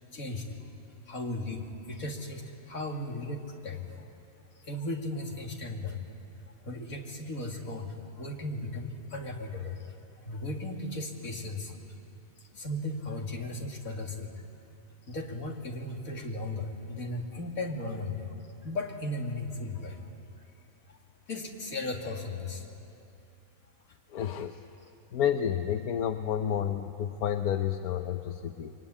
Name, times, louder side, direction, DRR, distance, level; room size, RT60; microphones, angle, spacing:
voice 1, 0.1-0.7 1.1-4.0 4.6-6.0 6.6-9.9 10.2-11.7 12.5-14.4 15.1-18.3 18.6-20.0 20.9-21.0 21.3-22.6, left 2 dB, 70° left, 1 dB, 3.0 m, -36 dB
voice 2, 24.1-24.7 25.1-28.7, left 9 dB, 90° left, 7 dB, 1.3 m, -30 dB
25.5 x 23.0 x 10.0 m, 2.7 s
omnidirectional pair, 1.5 m